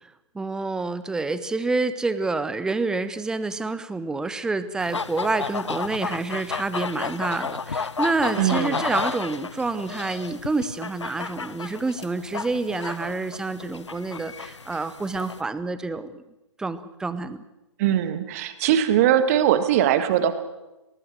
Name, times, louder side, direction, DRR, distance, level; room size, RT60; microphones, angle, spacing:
voice 1, 0.0-16.2 16.6-17.4, right 3 dB, 5° right, 14 dB, 0.8 m, -28 dB
sound 1, 4.8-15.4, left 5 dB, 65° left, 0.9 m, -32 dB
voice 2, 8.4-8.8 17.8-20.4, right 10 dB, 30° right, 11 dB, 1.8 m, -21 dB
23.0 x 19.0 x 7.8 m, 0.98 s
figure-of-eight pair, 130°, 16 cm